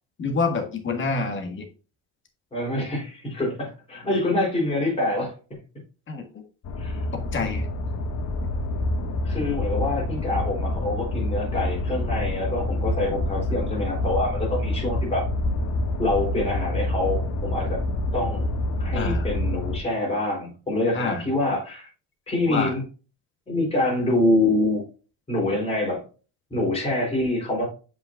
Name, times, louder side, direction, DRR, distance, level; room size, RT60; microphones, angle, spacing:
voice 1, 0.2-1.7 6.1-6.4 7.3-7.7 18.9-19.3 20.9-21.2 22.5-22.7, left 4 dB, 30° left, 1.6 m, -27 dB
voice 2, 2.5-5.3 6.8-7.1 9.2-15.3 16.0-17.8 18.1-18.5 18.8-21.9 22.3-22.8 23.5-24.8 25.3-26.0 26.5-27.7, left 2 dB, 15° left, 3.7 m, -25 dB
sound 1, 6.6-19.8, left 2 dB, 45° left, 1.3 m, -27 dB
7.5 x 5.5 x 2.5 m
cardioid pair, 150°, 37 cm